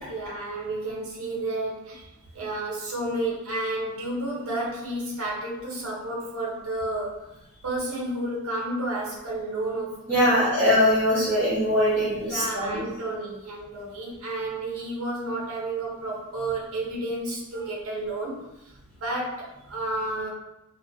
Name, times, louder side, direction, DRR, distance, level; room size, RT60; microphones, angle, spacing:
voice 1, 0.1-2.1 2.3-7.3 7.6-10.4 12.3-20.3, right 1 dB, 75° right, -3 dB, 0.8 m, -31 dB
voice 2, 10.1-12.8, equal, 15° left, -14 dB, 1.2 m, -22 dB
3.0 x 2.1 x 2.6 m, 0.92 s
head